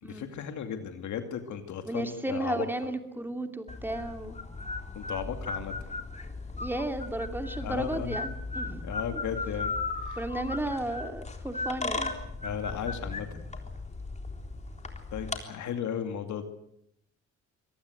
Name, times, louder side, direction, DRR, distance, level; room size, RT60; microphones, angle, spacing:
voice 1, 0.0-2.7 5.0-5.7 7.6-8.2 8.8-10.2 12.4-13.3 15.1-16.4, left 8 dB, 70° left, 7 dB, 2.5 m, -35 dB
voice 2, 1.9-4.4 6.5-8.9 10.2-12.1, right 1 dB, 5° right, 6 dB, 2.8 m, -34 dB
sound 1, 3.7-15.4, left 3 dB, 25° left, 3.7 m, -36 dB
24.5 x 19.0 x 8.1 m, 0.75 s
cardioid pair, 90°, 30 cm